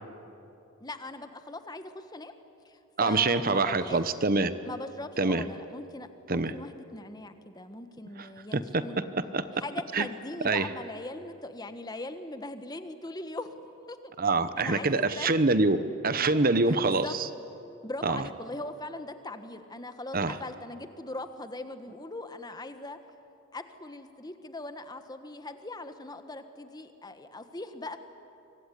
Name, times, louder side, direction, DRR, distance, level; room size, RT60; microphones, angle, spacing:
voice 1, 0.8-2.3 2.6-4.0 4.6-9.0 9.5-13.5 13.9-14.0 14.6-15.3 16.6-17.1 17.8-23.0 23.5-28.0, left 2 dB, 20° left, 9 dB, 1.3 m, -40 dB
voice 2, 3.0-4.5 5.2-5.4 6.3-6.5 8.5-8.8 9.3-9.4 9.9-10.1 10.4-10.7 14.2-15.8 16.0-17.0 18.0-18.2 20.1-20.4, right 3 dB, 40° right, 12 dB, 1.0 m, -25 dB
24.5 x 24.5 x 9.9 m, 2.8 s
head